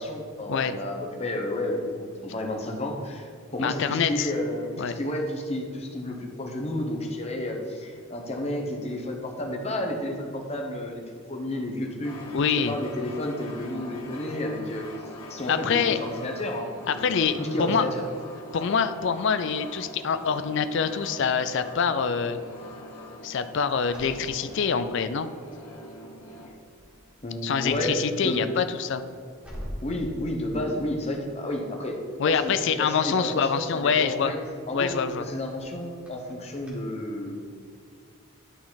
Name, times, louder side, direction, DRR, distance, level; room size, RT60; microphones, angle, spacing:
voice 1, 0.0-11.0 11.3-12.4 12.6-18.0 27.2-28.4 29.8-32.0 32.2-34.4 34.7-34.9 35.2-37.4, left 1 dB, 30° left, 1 dB, 1.0 m, -31 dB
voice 2, 3.6-4.3 4.8-5.0 12.3-12.7 15.5-16.0 16.9-17.9 18.5-22.4 23.2-25.3 27.4-29.0 32.2-34.3 34.7-35.2, left 6 dB, 55° left, 11 dB, 0.4 m, -25 dB
sound 1, 12.0-26.5, left 1 dB, 75° left, 1.3 m, -43 dB
sound 2, 23.8-25.4 25.9-26.2 26.4-36.7, equal, 5° right, 1.8 m, -47 dB
11.5 x 4.1 x 4.0 m, 2.4 s
head